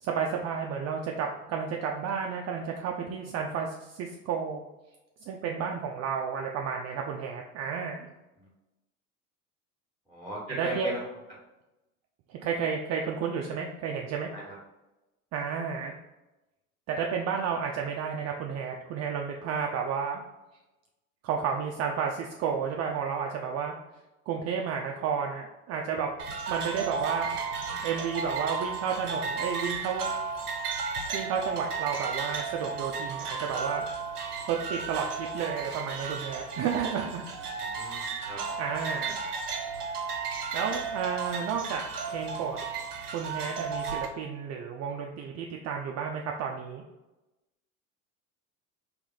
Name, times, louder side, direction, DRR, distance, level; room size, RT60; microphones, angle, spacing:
voice 1, 0.0-4.6 5.3-8.1 10.5-10.9 12.3-14.3 15.3-15.9 16.9-20.2 21.2-23.7 24.3-26.1 26.5-27.3 27.8-30.1 31.1-33.8 34.5-37.3 38.6-39.2 40.5-41.8 42.1-42.6 43.1-46.8, right 6 dB, 35° right, 1 dB, 0.5 m, -32 dB
voice 2, 10.1-11.1 14.3-14.6 37.7-38.0 38.3-38.4, right 1 dB, ahead, -5 dB, 1.3 m, -36 dB
sound 1, 26.2-44.1, right 5 dB, 90° right, 0.8 m, -34 dB
3.2 x 3.0 x 3.9 m, 1.0 s
hypercardioid pair, 80°, 45 cm